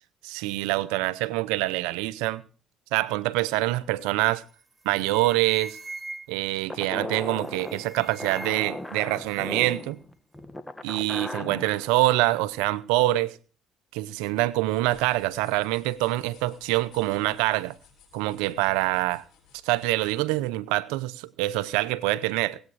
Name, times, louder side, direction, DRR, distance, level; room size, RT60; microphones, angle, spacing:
voice 1, 0.2-2.4 2.9-4.4 4.9-5.8 6.3-10.0 10.8-13.4 13.9-17.8 18.1-19.2 19.6-22.6, right 17 dB, 85° right, 0.6 m, -25 dB
sound 1, 4.4-4.6 4.9-6.6 7.4-8.9 9.1-9.9, right 2 dB, 30° right, 0.7 m, -42 dB
sound 2, 6.7-11.8, left 1 dB, 15° left, 1.7 m, -37 dB
sound 3, 14.6-20.2, left 6 dB, 60° left, 6.9 m, -57 dB
17.5 x 8.7 x 4.7 m
hypercardioid pair, 55°, 0 cm